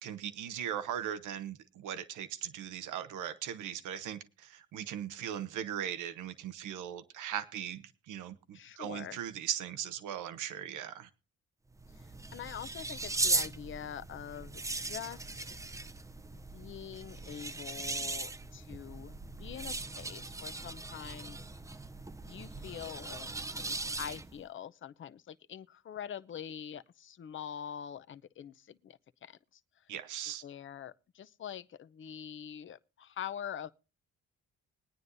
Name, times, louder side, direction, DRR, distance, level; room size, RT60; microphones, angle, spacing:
voice 1, 0.0-11.1 29.9-30.4, right 10 dB, 85° right, 1.1 m, -39 dB
voice 2, 8.5-9.2 11.9-15.5 16.5-21.4 22.2-23.3 23.5-29.4 29.8-29.9 30.4-33.7, left 9 dB, 40° left, 0.6 m, -44 dB
sound 1, 11.7-24.4, right 2 dB, 10° right, 0.6 m, -38 dB
21.5 x 9.6 x 2.6 m
cardioid pair, 90°, 30 cm